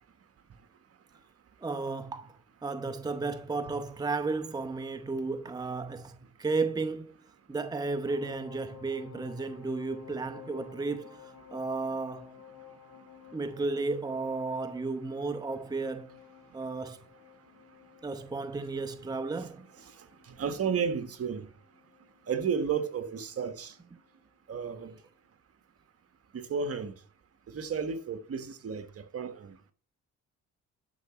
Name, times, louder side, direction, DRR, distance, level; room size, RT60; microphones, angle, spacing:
voice 1, 1.6-7.2 7.5-12.3 13.3-16.1 16.5-17.0 18.0-19.7, right 3 dB, 15° right, 0.7 m, -33 dB
sound 1, 8.1-23.6 23.9-24.1, left 8 dB, 75° left, 1.6 m, -53 dB
voice 2, 20.3-21.5 22.3-23.7 24.5-24.9 26.3-26.9 27.5-28.9 29.1-29.6, right 6 dB, 50° right, 1.5 m, -32 dB
11.0 x 6.0 x 4.3 m
cardioid pair, 90°, 30 cm